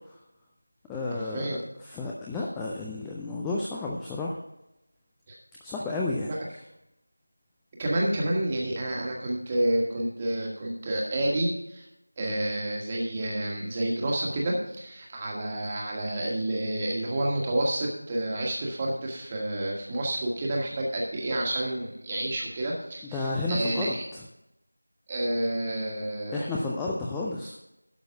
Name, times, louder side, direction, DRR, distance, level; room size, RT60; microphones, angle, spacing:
voice 1, 0.9-4.4 5.6-6.3 23.1-24.2 26.3-27.6, left 2 dB, 5° left, -3 dB, 0.4 m, -32 dB
voice 2, 7.8-11.8 12.2-24.0 25.1-26.5, right 1 dB, 15° right, -2 dB, 1.6 m, -29 dB
11.5 x 6.3 x 5.9 m, 0.87 s
figure-of-eight pair, 170°, 0 cm